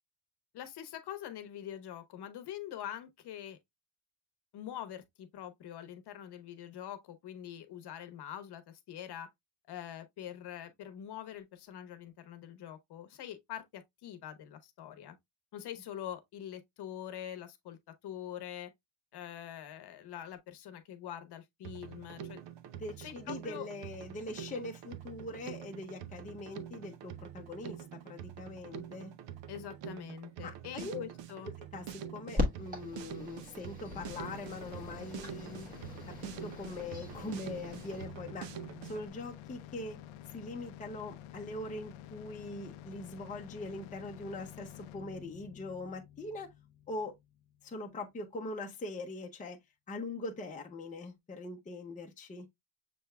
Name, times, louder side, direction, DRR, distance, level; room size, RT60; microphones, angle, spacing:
voice 1, 0.5-3.6 4.5-9.3 9.7-15.2 15.5-17.8 18.0-18.7 19.1-22.4 23.0-23.7 29.5-31.5, left 10 dB, 55° left, 1.0 m, -44 dB
Drum kit, 21.6-39.1, right 9 dB, 60° right, 0.7 m, -46 dB
voice 2, 22.7-29.1 30.4-31.0 31.6-35.7 36.2-38.5 38.9-40.0 40.3-46.5 46.9-47.1 47.6-49.6 49.9-52.5, left 2 dB, 15° left, 0.7 m, -42 dB
sound 1, 32.4-38.1, left 2 dB, 15° right, 1.3 m, -40 dB
sound 2, 33.8-47.8, left 11 dB, 75° left, 0.6 m, -50 dB
6.7 x 3.4 x 2.2 m
cardioid pair, 150°, 49 cm